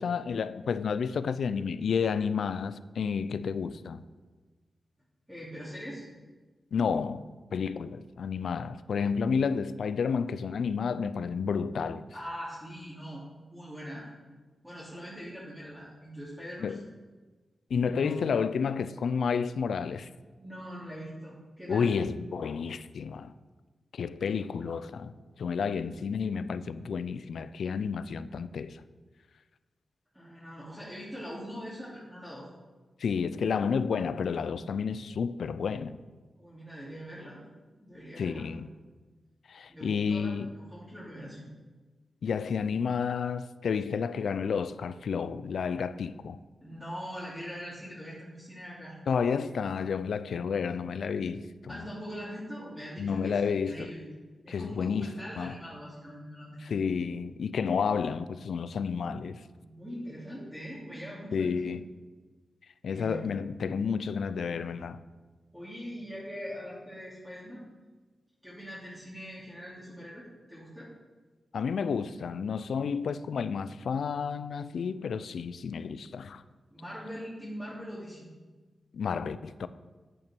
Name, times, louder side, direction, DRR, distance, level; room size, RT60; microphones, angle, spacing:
voice 1, 0.0-4.0 6.7-7.3 7.5-12.0 16.6-16.8 17.7-20.1 21.7-23.3 23.9-28.8 33.0-36.0 38.2-38.7 39.5-40.5 42.2-46.4 49.1-51.9 53.0-53.9 54.5-55.5 56.6-59.4 61.3-61.9 62.8-65.0 71.5-76.4 78.9-79.7, left 6 dB, 80° left, 0.4 m, -31 dB
voice 2, 5.3-6.1 12.1-13.2 13.5-14.1 14.6-16.8 17.8-18.3 20.3-21.9 30.1-32.5 36.3-37.4 37.8-38.5 39.7-41.5 46.6-49.0 49.3-49.5 51.7-54.1 54.4-56.8 58.7-59.2 59.6-61.7 62.8-63.4 65.5-67.6 68.4-70.9 76.7-78.3, equal, 5° right, 2.8 m, -42 dB
8.9 x 8.8 x 4.5 m
cardioid pair, 65°, 0 cm